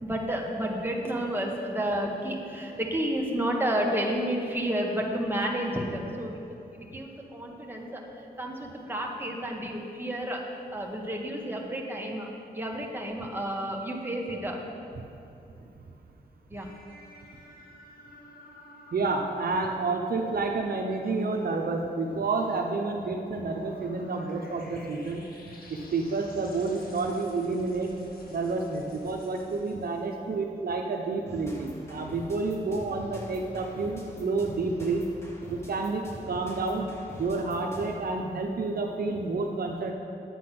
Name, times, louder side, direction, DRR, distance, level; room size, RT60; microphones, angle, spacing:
voice 1, 0.0-6.4 6.7-8.0 8.4-10.4 10.7-12.3 12.5-14.6 16.5-16.7, right 1 dB, 10° right, -1 dB, 1.7 m, -31 dB
sound 1, 16.5-30.3, left 1 dB, 60° left, 1.7 m, -51 dB
voice 2, 18.9-25.2 25.7-27.9 28.3-35.0 35.5-36.9 37.2-39.9, right 3 dB, 60° right, 1 dB, 0.9 m, -29 dB
sound 2, 31.3-38.1, equal, 15° left, 2.5 m, -44 dB
9.7 x 8.5 x 6.0 m, 2.7 s
cardioid pair, 70°, 18 cm